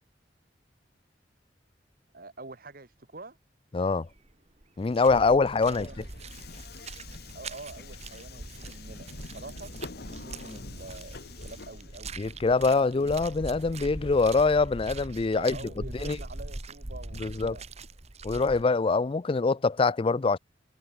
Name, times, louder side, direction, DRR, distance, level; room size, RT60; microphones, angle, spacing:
voice 1, 2.1-3.4 5.7-6.1 7.3-9.7 10.0-12.2 15.3-17.7 19.1-19.2, right 2 dB, 55° right, 2.0 m, -46 dB
voice 2, 3.7-4.1 4.8-5.9 12.2-15.6 16.0-16.2 17.2-17.6 18.2-20.4, left 4 dB, 30° left, 0.4 m, -24 dB
sound 1, 4.1-4.3 4.6-18.6, right 2 dB, 40° right, 1.5 m, -42 dB
Subway metro underground, 5.6-14.4, left 3 dB, 60° left, 1.4 m, -47 dB
head